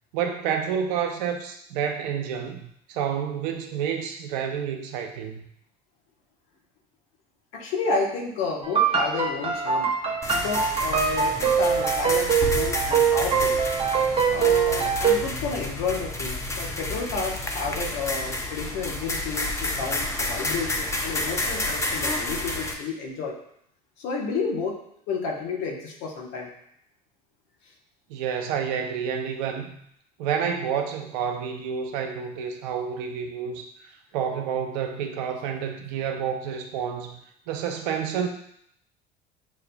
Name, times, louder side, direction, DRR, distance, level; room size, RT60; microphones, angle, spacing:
voice 1, 0.1-5.4 28.1-29.7 30.2-37.2 37.5-38.3, right 7 dB, 75° right, 5 dB, 0.6 m, -29 dB
voice 2, 7.5-9.9 10.3-13.6 14.3-23.4 24.0-24.8 25.1-26.5, left 4 dB, 70° left, 0 dB, 1.0 m, -31 dB
sound 1, 8.6-15.2, right 6 dB, 30° right, 0.7 m, -23 dB
sound 2, 10.2-22.7, left 2 dB, 15° left, 0.6 m, -30 dB
6.3 x 2.5 x 2.2 m, 0.70 s
hypercardioid pair, 85°, 21 cm